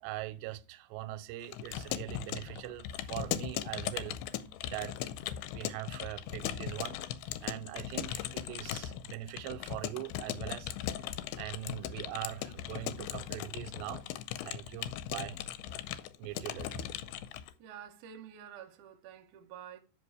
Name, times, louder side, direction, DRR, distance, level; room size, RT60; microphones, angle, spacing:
voice 1, 0.0-4.2 4.7-5.1 5.5-7.0 7.2-10.7 11.3-14.0 14.4-15.4 16.2-16.8, right 14 dB, 90° right, 2.8 m, -41 dB
Keyboard (musical) / Computer keyboard, 1.4-17.5, left 11 dB, 80° left, 2.5 m, -38 dB
voice 2, 17.6-19.8, right 9 dB, 70° right, 1.9 m, -49 dB
8.2 x 5.4 x 4.7 m
omnidirectional pair, 4.9 m